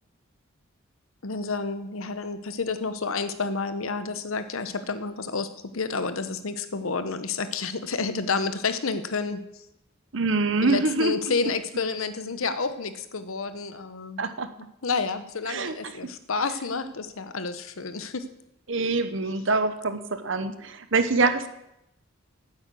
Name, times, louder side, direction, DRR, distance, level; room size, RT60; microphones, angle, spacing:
voice 1, 1.2-5.5 5.7-9.4 10.6-14.2 14.8-18.3, left 4 dB, 75° left, 11 dB, 0.9 m, -30 dB
voice 2, 10.1-11.3 14.2-14.5 15.5-16.1 18.7-21.5, right 3 dB, 60° right, 11 dB, 0.9 m, -25 dB
9.3 x 8.7 x 7.6 m, 0.86 s
head